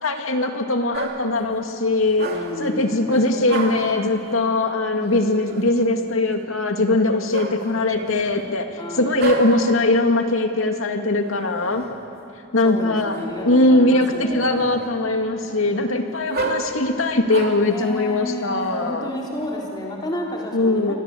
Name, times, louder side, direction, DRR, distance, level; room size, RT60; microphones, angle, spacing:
voice 1, 0.0-2.3 2.6-8.7 8.9-11.8 12.5-13.2 13.4-19.1 20.5-21.0, left 2 dB, 85° left, 5 dB, 2.2 m, -20 dB
sound 1, 0.9-1.4 2.1-2.7 3.1-4.0 5.0-5.7 7.3-8.3 9.2-9.8 11.2-12.0 13.1-13.6 14.1-15.0 15.4-17.7 18.4-19.5, right 3 dB, 50° right, 3.0 m, -31 dB
voice 2, 2.2-3.2 8.8-9.4 12.6-14.7 17.6-21.0, left 1 dB, 20° left, -2 dB, 3.6 m, -31 dB
29.0 x 23.0 x 8.4 m, 2.8 s
head